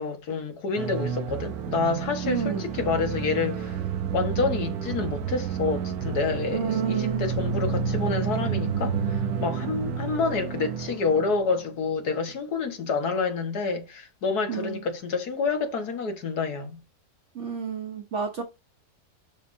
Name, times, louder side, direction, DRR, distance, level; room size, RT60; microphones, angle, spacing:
voice 1, 0.0-3.8 4.1-16.8, left 4 dB, 85° left, 2.1 m, -28 dB
sound 1, 0.7-11.5, right 6 dB, 75° right, 1.3 m, -30 dB
voice 2, 2.2-2.7 6.5-7.3 14.5-14.8 17.3-18.4, right 7 dB, 55° right, 1.2 m, -30 dB
10.0 x 6.8 x 2.7 m
omnidirectional pair, 1.6 m